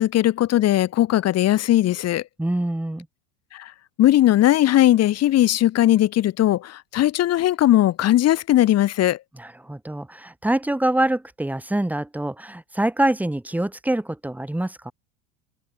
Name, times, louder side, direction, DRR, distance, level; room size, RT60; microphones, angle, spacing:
voice 1, 0.0-2.2 3.5-3.7 4.0-9.2, left 13 dB, 40° left, 2.1 m, -18 dB
voice 2, 2.4-3.1 9.4-14.9, right 1 dB, 5° right, 2.9 m, -25 dB
hypercardioid pair, 105°, 40 cm